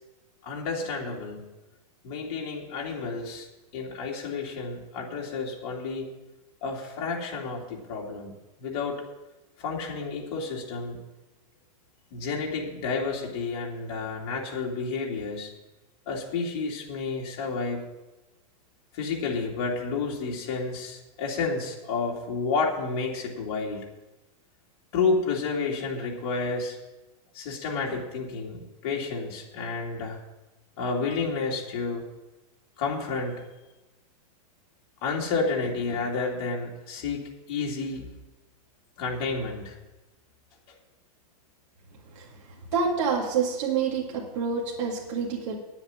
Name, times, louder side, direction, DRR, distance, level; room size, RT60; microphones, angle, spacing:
voice 1, 0.4-1.5 2.0-3.5 3.7-6.1 6.6-8.3 8.6-9.0 9.6-11.0 12.1-15.5 16.1-17.8 18.9-23.8 24.9-26.8 27.3-30.2 30.8-32.0 32.8-33.4 35.0-38.0 39.0-39.8, left 4 dB, 40° left, -2 dB, 2.8 m, -30 dB
voice 2, 42.7-45.5, right 5 dB, 50° right, -2 dB, 2.1 m, -27 dB
9.8 x 7.9 x 8.7 m, 1.1 s
supercardioid pair, 165°, 20 cm